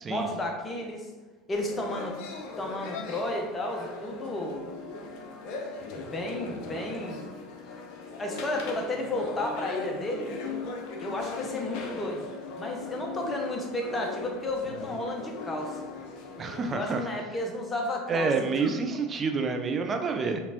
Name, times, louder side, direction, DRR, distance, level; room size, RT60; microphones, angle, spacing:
voice 1, 0.1-1.1 1.5-2.2 2.6-4.7 5.9-7.3 8.2-10.4 11.0-12.3 12.5-15.8 16.7-18.5, left 1 dB, 25° left, 1 dB, 1.0 m, -32 dB
sound 1, 1.5-16.7, left 4 dB, 60° left, 0.7 m, -39 dB
voice 2, 16.4-17.1 18.1-20.4, right 4 dB, 35° right, 5 dB, 0.6 m, -28 dB
4.9 x 3.3 x 2.8 m, 1.2 s
hypercardioid pair, 75°, 0 cm